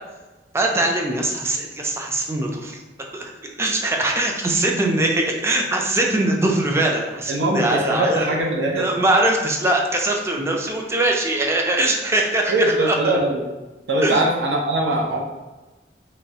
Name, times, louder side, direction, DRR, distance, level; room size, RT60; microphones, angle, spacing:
voice 1, 0.5-3.3 3.6-8.3 8.8-12.5 12.8-13.2 14.0-14.2, right 1 dB, 15° right, 1 dB, 0.3 m, -22 dB
voice 2, 7.3-8.9 12.5-13.4 13.9-15.2, right 1 dB, 85° right, 0 dB, 0.6 m, -21 dB
3.0 x 2.3 x 2.7 m, 1.2 s
head